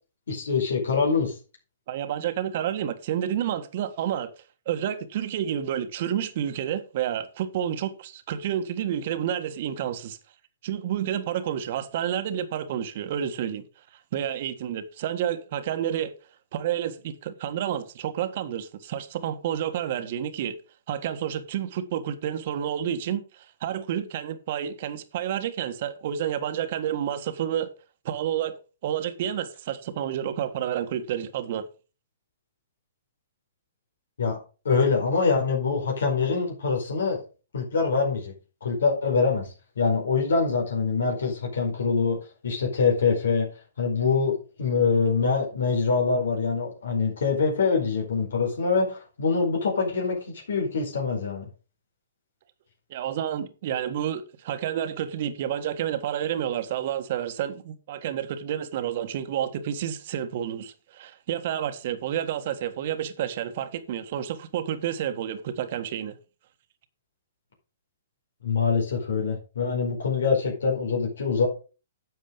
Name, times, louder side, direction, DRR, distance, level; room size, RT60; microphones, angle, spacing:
voice 1, 0.3-1.4 34.2-34.4 34.6-37.2 37.5-38.3 38.6-42.2 42.4-43.5 43.8-51.4 68.4-71.5, left 5 dB, 75° left, 4.7 m, -24 dB
voice 2, 1.9-4.3 4.6-10.2 10.6-13.6 14.1-16.1 16.5-20.6 20.9-27.7 28.0-28.6 28.8-31.6 52.9-66.2, right 10 dB, 50° right, 1.6 m, -30 dB
10.5 x 7.3 x 5.2 m
hypercardioid pair, 130°, 0 cm